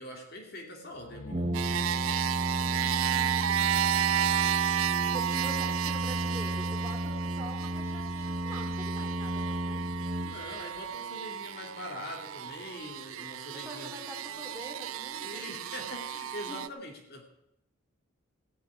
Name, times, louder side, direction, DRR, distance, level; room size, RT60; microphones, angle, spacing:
voice 1, 0.0-1.5 10.2-13.9 15.2-17.2, left 1 dB, 50° left, 2 dB, 2.3 m, -43 dB
sound 1, 0.9-4.6, left 3 dB, 80° left, 1.1 m, -50 dB
Brass instrument, 1.3-10.8, equal, 35° right, 0.7 m, -33 dB
sound 2, 1.5-16.7, right 11 dB, 80° right, 0.5 m, -32 dB
voice 2, 2.6-4.2 5.1-9.8 13.6-15.6 16.5-16.6, right 1 dB, 10° right, 0 dB, 2.8 m, -45 dB
16.5 x 6.2 x 9.4 m, 0.80 s
head